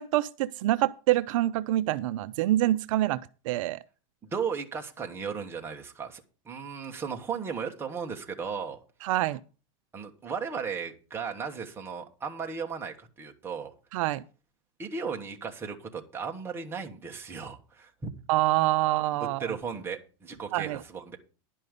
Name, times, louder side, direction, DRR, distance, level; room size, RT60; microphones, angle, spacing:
voice 1, 0.0-3.2 3.5-3.8 9.0-9.4 13.9-14.2 18.3-19.5 20.5-20.8, right 15 dB, 70° right, 0.5 m, -26 dB
voice 2, 4.2-8.8 9.9-13.7 14.8-18.1 19.4-21.2, right 6 dB, 15° right, 1.2 m, -36 dB
11.0 x 5.5 x 6.5 m
supercardioid pair, 165°, 17 cm